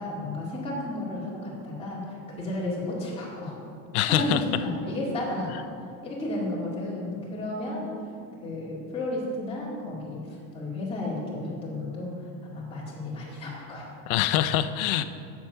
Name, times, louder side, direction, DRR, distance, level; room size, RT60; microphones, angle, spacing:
voice 1, 0.0-3.6 4.1-5.5 5.8-7.9 8.4-13.9, left 1 dB, 15° left, -6 dB, 2.1 m, -33 dB
voice 2, 3.9-4.6 5.5-5.6 14.1-15.0, left 12 dB, 80° left, 12 dB, 0.7 m, -25 dB
7.7 x 7.3 x 5.6 m, 2.4 s
cardioid pair, 160°, 42 cm